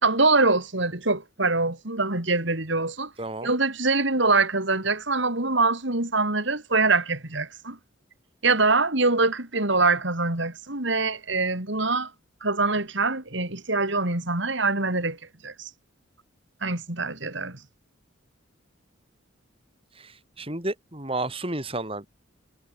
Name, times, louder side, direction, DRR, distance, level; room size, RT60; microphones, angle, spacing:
voice 1, 0.0-3.1 3.4-7.8 8.4-12.1 12.4-15.2 15.4-15.7 16.6-17.6, right 3 dB, 60° right, 3.4 m, -24 dB
voice 2, 3.2-3.5 19.9-22.1, right 2 dB, 25° right, 4.7 m, -32 dB
head